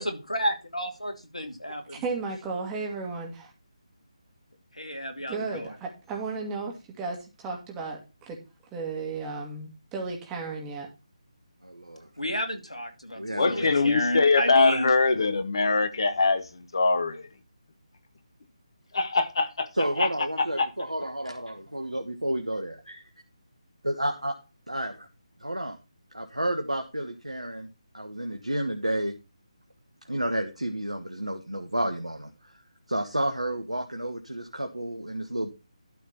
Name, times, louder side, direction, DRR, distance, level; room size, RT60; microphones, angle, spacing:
voice 1, 0.0-2.0 4.7-5.7 12.2-14.9, equal, 80° left, 2.5 m, -31 dB
voice 2, 1.7-3.5 5.3-8.4 8.7-10.9, right 4 dB, 10° right, 2.1 m, -34 dB
voice 3, 11.6-12.1 13.2-13.7 19.7-23.0 23.8-24.4 24.7-25.1 25.4-25.8 26.1-27.7 27.9-29.1 30.1-32.3 32.9-35.5, right 1 dB, 80° right, 1.5 m, -31 dB
voice 4, 13.3-17.3 19.0-19.5 20.0-20.1 20.6-20.7, left 4 dB, 50° left, 1.4 m, -23 dB
12.5 x 4.4 x 5.7 m
figure-of-eight pair, 150°, 3 cm